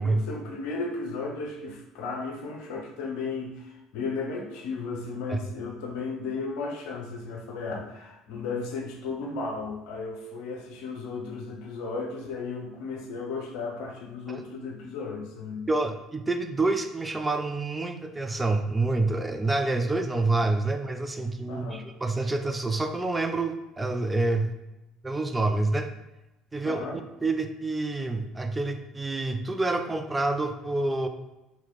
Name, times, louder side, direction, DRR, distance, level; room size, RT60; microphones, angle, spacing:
voice 1, 0.0-15.7 21.5-21.9 26.6-27.0, left 4 dB, 65° left, 1 dB, 0.6 m, -35 dB
voice 2, 15.7-24.5 25.0-25.9 26.5-26.9 27.2-31.1, right 2 dB, 15° right, 6 dB, 0.4 m, -27 dB
3.0 x 2.8 x 3.8 m, 1.0 s
figure-of-eight pair, 60°, 0 cm